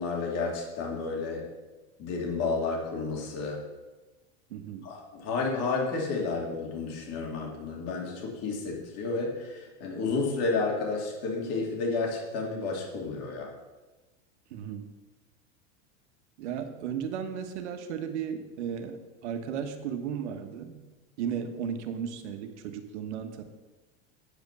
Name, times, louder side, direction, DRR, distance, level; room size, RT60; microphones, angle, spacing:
voice 1, 0.0-1.5 2.0-3.6 4.8-13.5, left 4 dB, 45° left, -1 dB, 2.6 m, -31 dB
voice 2, 4.5-4.9 14.5-14.9 16.4-19.0 19.2-20.8 21.2-23.4, right 8 dB, 90° right, 7 dB, 1.3 m, -35 dB
9.0 x 5.2 x 6.7 m, 1.2 s
supercardioid pair, 140°, 33 cm